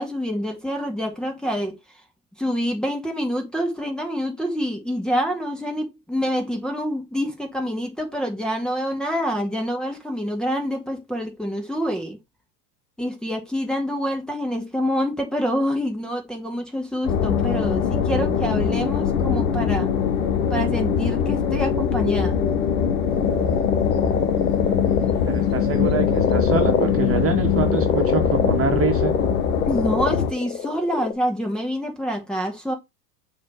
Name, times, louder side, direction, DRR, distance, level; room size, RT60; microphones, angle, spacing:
voice 1, 0.0-1.8 2.4-12.2 13.0-19.9 20.5-22.4 29.7-32.7, equal, ahead, 2.2 m, -26 dB
sound 1, 17.0-30.3, left 7 dB, 65° left, 1.4 m, -22 dB
sound 2, 23.1-25.5 25.9-31.1, left 6 dB, 85° left, 1.2 m, -25 dB
voice 2, 25.3-29.1, right 5 dB, 30° right, 2.1 m, -25 dB
6.5 x 3.6 x 5.8 m
hypercardioid pair, 90°, 47 cm